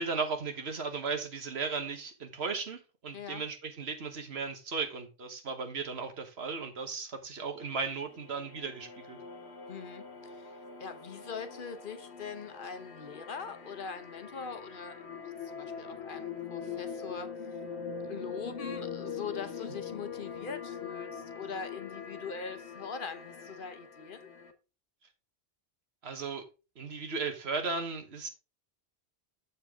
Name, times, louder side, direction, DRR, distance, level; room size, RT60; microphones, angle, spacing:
voice 1, 0.0-9.2 26.0-26.4 26.8-28.3, right 4 dB, 75° right, 1.5 m, -36 dB
sound 1, 7.6-24.5, left 6 dB, 90° left, 1.4 m, -43 dB
voice 2, 9.7-15.0 15.4-17.3 18.1-24.3, left 5 dB, 55° left, 1.0 m, -42 dB
7.4 x 6.8 x 3.6 m
omnidirectional pair, 1.1 m